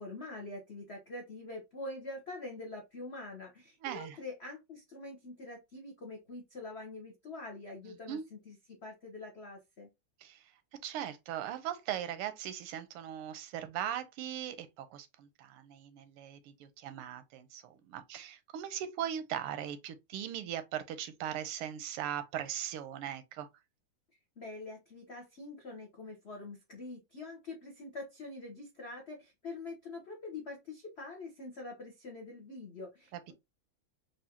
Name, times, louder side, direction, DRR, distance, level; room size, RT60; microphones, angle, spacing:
voice 1, 0.0-8.6 8.8-9.9 24.4-33.3, left 2 dB, 85° left, 0.5 m, -45 dB
voice 2, 3.8-4.2 7.9-8.2 10.2-10.5 10.8-23.5 33.3-33.4, right 10 dB, 85° right, 1.5 m, -39 dB
4.8 x 2.5 x 2.7 m
omnidirectional pair, 2.4 m